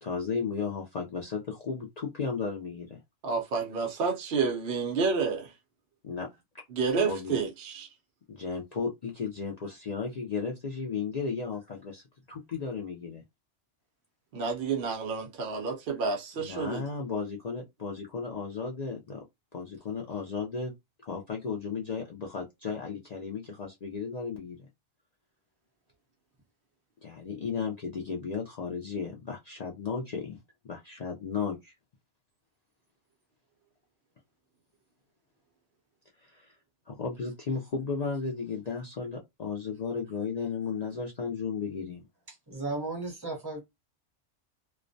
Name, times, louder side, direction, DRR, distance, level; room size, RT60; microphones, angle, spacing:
voice 1, 0.0-3.0 6.0-6.3 6.9-7.4 8.3-13.2 16.4-19.2 19.5-20.7 21.0-24.6 27.0-30.4 30.6-31.7 36.2-36.5 36.9-42.0, left 5 dB, 70° left, 0.3 m, -34 dB
voice 2, 3.2-5.5 6.7-7.9 14.3-16.9, right 5 dB, 60° right, 0.6 m, -29 dB
voice 3, 42.3-43.6, right 2 dB, 20° right, 0.7 m, -35 dB
2.3 x 2.1 x 2.5 m
omnidirectional pair, 1.3 m